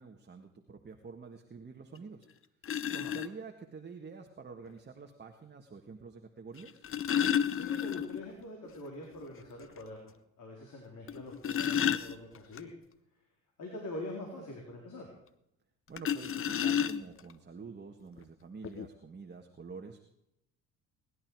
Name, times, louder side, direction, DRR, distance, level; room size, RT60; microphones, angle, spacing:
voice 1, 0.0-2.3 2.9-6.9 15.9-20.0, right 5 dB, 25° right, 3 dB, 1.7 m, -48 dB
sound 1, 2.0-2.1 2.6-3.3 4.7-4.8 6.6-8.3 8.6-8.7 9.2-9.3 9.8-9.9 11.1-12.6 16.0-17.3 18.2-18.3 18.6-18.9, left 8 dB, 30° left, 0.9 m, -31 dB
voice 2, 7.5-12.7 13.6-15.1, left 1 dB, 50° left, 0 dB, 4.0 m, -44 dB
19.0 x 11.5 x 4.8 m, 0.82 s
hypercardioid pair, 70°, 41 cm